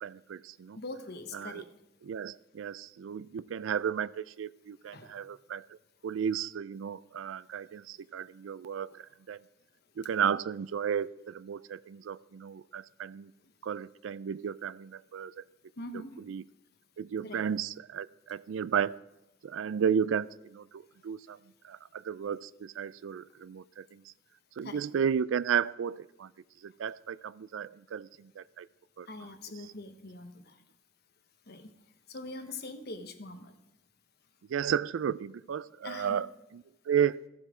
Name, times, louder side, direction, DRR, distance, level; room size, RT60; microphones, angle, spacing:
voice 1, 0.0-0.8 1.3-1.6 2.0-5.7 6.0-9.4 10.0-13.3 13.6-15.4 16.3-16.4 17.0-19.0 19.4-21.4 21.6-24.0 24.6-26.3 26.6-28.7 29.0-29.1 34.5-36.3 36.9-37.2, right 8 dB, 80° right, 19 dB, 0.4 m, -33 dB
voice 2, 0.8-1.6 4.9-5.1 15.8-16.2 17.2-17.5 24.6-24.8 29.1-30.6 31.5-31.7 32.1-33.5 35.8-36.2, left 2 dB, 55° left, 7 dB, 1.2 m, -43 dB
14.5 x 7.4 x 4.9 m, 0.97 s
head